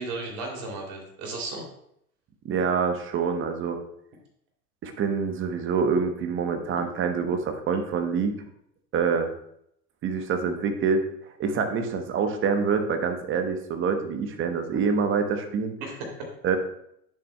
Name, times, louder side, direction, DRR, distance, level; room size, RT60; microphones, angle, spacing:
voice 1, 0.0-1.6 6.7-6.8 15.8-16.3, right 3 dB, 45° right, 1 dB, 2.9 m, -35 dB
voice 2, 2.4-3.8 4.8-8.3 8.9-9.3 10.0-11.1 11.4-15.7 16.4-16.6, right 5 dB, 25° right, 7 dB, 0.9 m, -26 dB
10.0 x 6.8 x 2.2 m, 0.72 s
hypercardioid pair, 90°, 47 cm